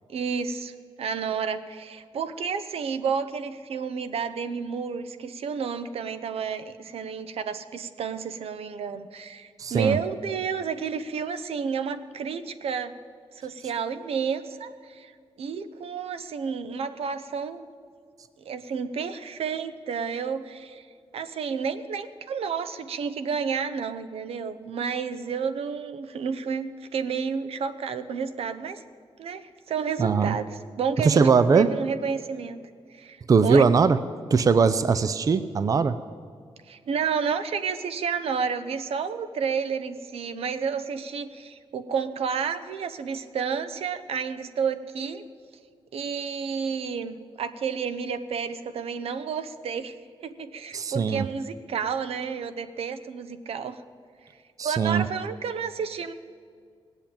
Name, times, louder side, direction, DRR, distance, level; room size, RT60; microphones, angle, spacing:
voice 1, 0.1-12.9 13.3-15.1 15.4-17.7 18.4-20.9 21.1-28.8 29.2-32.6 32.9-33.7 36.7-45.2 45.9-50.0 50.2-53.8 54.6-56.1, right 6 dB, 80° right, 11 dB, 0.8 m, -31 dB
voice 2, 9.6-10.0 30.0-30.4 31.0-31.7 33.3-34.0 34.3-36.0 50.7-51.3 54.6-55.0, right 5 dB, 35° right, 13 dB, 0.5 m, -20 dB
18.0 x 8.2 x 8.6 m, 2.1 s
wide cardioid pair, 150°, 10 cm